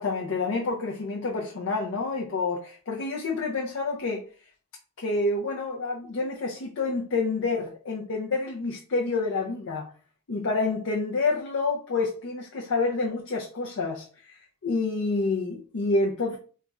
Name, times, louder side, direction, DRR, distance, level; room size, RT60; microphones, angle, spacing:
voice 1, 0.0-4.2 5.0-9.9 10.3-16.4, left 3 dB, 60° left, 0.5 m, -28 dB
2.4 x 2.3 x 4.0 m
head